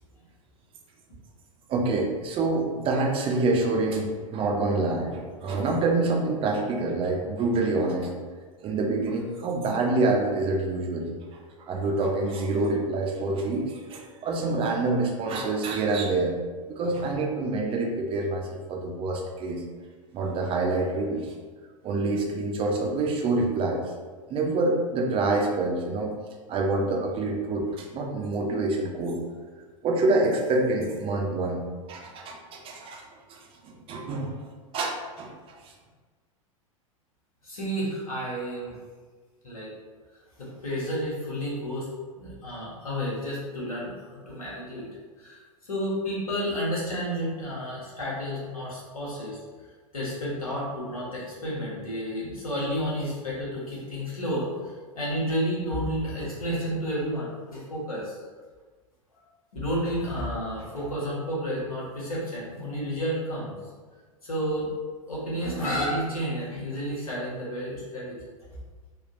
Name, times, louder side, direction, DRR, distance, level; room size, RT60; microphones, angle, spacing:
voice 1, 1.7-8.1 8.6-11.1 11.6-16.4 16.7-19.6 20.1-21.3 21.8-23.8 24.3-26.1 26.5-29.2 29.8-31.6 31.9-33.0 33.3-33.5 33.9-34.4 34.7-35.3 35.6-35.7, right 2 dB, 30° right, 0 dB, 0.6 m, -26 dB
voice 2, 37.4-38.7 39.4-39.7 40.4-41.9 42.1-44.8 45.2-45.4 45.7-49.4 49.9-58.1 59.5-63.5 64.2-64.7 65.1-68.2, equal, 80° left, -6 dB, 1.2 m, -31 dB
3.5 x 2.3 x 2.5 m, 1.4 s
figure-of-eight pair, 90°, 18 cm